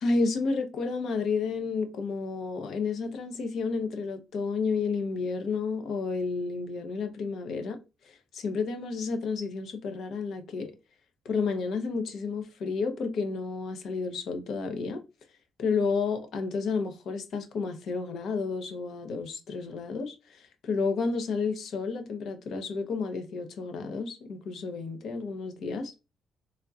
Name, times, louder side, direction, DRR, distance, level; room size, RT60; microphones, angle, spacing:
voice 1, 0.0-7.8 8.1-10.7 11.2-15.0 15.6-25.9, left 4 dB, 70° left, 0.8 m, -31 dB
3.5 x 2.8 x 2.4 m
cardioid pair, 90°, 0 cm